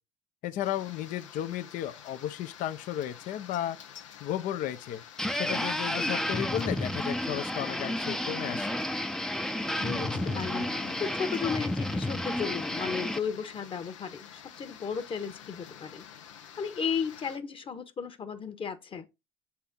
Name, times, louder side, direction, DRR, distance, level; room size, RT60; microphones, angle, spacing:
voice 1, 0.4-3.8 4.2-5.0 5.3-8.7, left 11 dB, 55° left, 0.7 m, -34 dB
sound 1, 0.6-17.4, left 9 dB, 85° left, 0.8 m, -48 dB
sound 2, 5.2-13.2, left 1 dB, 5° left, 0.6 m, -31 dB
voice 2, 9.8-10.1 10.3-10.6 11.0-16.1 16.6-19.1, left 6 dB, 35° left, 1.2 m, -34 dB
7.1 x 4.2 x 3.8 m
hypercardioid pair, 75°, 16 cm